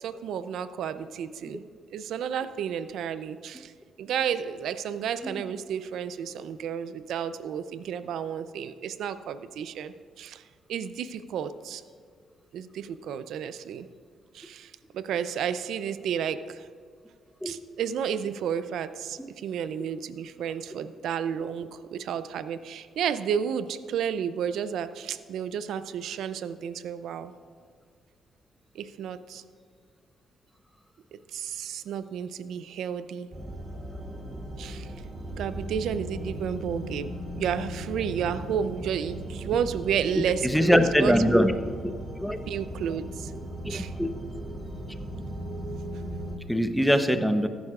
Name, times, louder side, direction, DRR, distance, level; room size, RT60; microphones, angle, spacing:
voice 1, 0.0-3.7 4.0-10.4 10.7-11.8 12.5-13.9 14.3-16.7 17.4-27.3 28.7-29.4 31.3-33.3 34.6-34.9 35.4-41.4 42.5-43.3 43.7-43.9, right 8 dB, 75° right, 13 dB, 0.5 m, -32 dB
sound 1, 33.3-46.4, right 1 dB, 30° right, 2.8 m, -37 dB
voice 2, 40.4-41.5 41.8-41.9 42.2-42.4 43.6-44.1 46.5-47.5, equal, ahead, 8 dB, 0.8 m, -22 dB
14.5 x 11.5 x 2.4 m, 2.1 s
cardioid pair, 90°, 0 cm